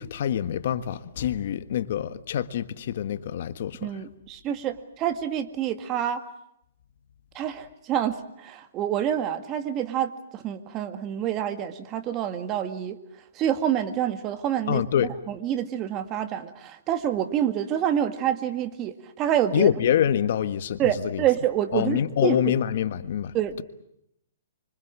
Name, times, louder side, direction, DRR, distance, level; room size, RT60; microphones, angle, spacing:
voice 1, 0.0-3.9 14.7-15.1 19.5-21.2 21.7-23.6, left 9 dB, 55° left, 1.5 m, -26 dB
voice 2, 3.8-6.2 7.3-13.0 13.3-14.8 15.3-19.7 20.8-22.5 23.3-23.6, right 10 dB, 25° right, 1.9 m, -27 dB
26.0 x 25.0 x 7.5 m
hypercardioid pair, 155°, 0 cm